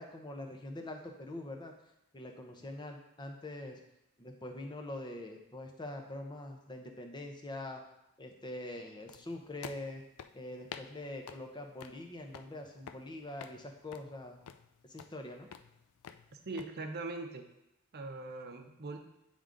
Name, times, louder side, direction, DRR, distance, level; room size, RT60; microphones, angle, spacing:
voice 1, 0.0-1.7 2.1-3.8 4.2-7.8 8.2-10.0 10.3-14.4 14.9-15.5, left 1 dB, 20° left, 4 dB, 0.7 m, -44 dB
sound 1, 9.1-16.7, left 7 dB, 75° left, 0.4 m, -51 dB
voice 2, 16.3-17.4 17.9-19.0, right 2 dB, 50° right, 6 dB, 0.7 m, -41 dB
8.7 x 3.7 x 3.8 m, 0.89 s
head